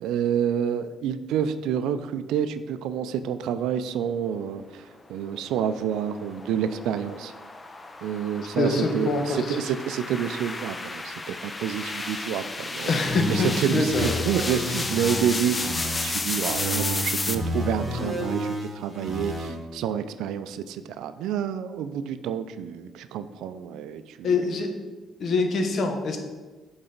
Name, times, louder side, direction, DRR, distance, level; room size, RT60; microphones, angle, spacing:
voice 1, 0.0-7.3 8.0-12.9 13.3-24.4, right 8 dB, 90° right, 12 dB, 0.3 m, -28 dB
sound 1, 5.3-17.4, left 3 dB, 25° left, 0.5 m, -33 dB
voice 2, 8.6-9.6 12.9-14.2 24.2-24.7 25.2-26.2, left 3 dB, 60° left, 4 dB, 1.0 m, -25 dB
sound 2, 13.1-16.1 16.5-19.5, equal, 5° right, 2.1 m, -31 dB
7.7 x 4.0 x 3.9 m, 1.3 s
cardioid pair, 90°, 0 cm